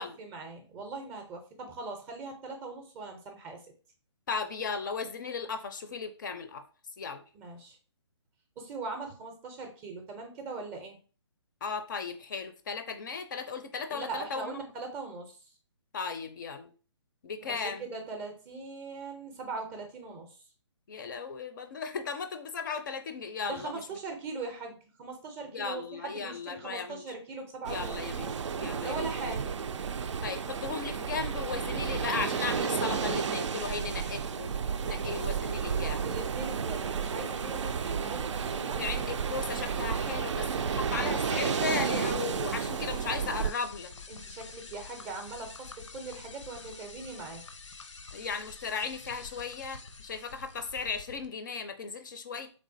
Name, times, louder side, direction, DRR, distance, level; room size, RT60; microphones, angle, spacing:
voice 1, 0.0-3.6 7.3-7.8 8.6-11.0 13.9-15.5 17.4-20.4 23.4-28.3 28.8-29.6 35.0-35.2 36.0-38.8 44.1-47.4, right 3 dB, 15° right, 4 dB, 0.5 m, -40 dB
voice 2, 4.3-6.6 7.0-7.2 11.6-14.7 15.9-16.7 17.2-17.9 20.9-23.7 25.5-27.1 27.7-29.3 30.2-34.6 34.8-36.2 38.6-43.9 48.1-52.5, left 5 dB, 40° left, 8 dB, 0.4 m, -36 dB
sound 1, 27.6-43.5, right 6 dB, 80° right, 0.4 m, -32 dB
sound 2, 42.2-51.3, left 4 dB, 85° left, 0.6 m, -48 dB
3.5 x 3.1 x 2.6 m, 0.37 s
hypercardioid pair, 150°, 15 cm